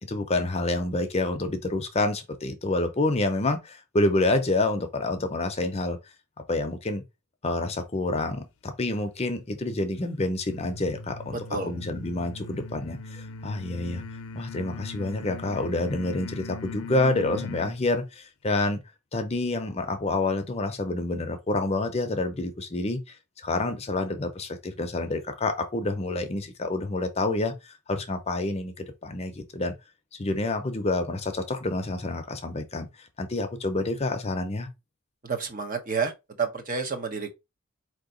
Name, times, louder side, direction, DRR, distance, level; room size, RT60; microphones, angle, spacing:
voice 1, 0.0-6.0 6.5-7.0 7.4-14.0 14.3-18.8 19.1-23.0 23.4-29.8 30.1-32.9 33.2-34.7, left 2 dB, 30° left, 0.6 m, -28 dB
sound 1, 10.5-17.8, left 3 dB, 80° left, 0.6 m, -40 dB
voice 2, 35.2-36.1 36.4-37.3, right 5 dB, 40° right, 0.9 m, -29 dB
4.3 x 2.9 x 3.8 m
head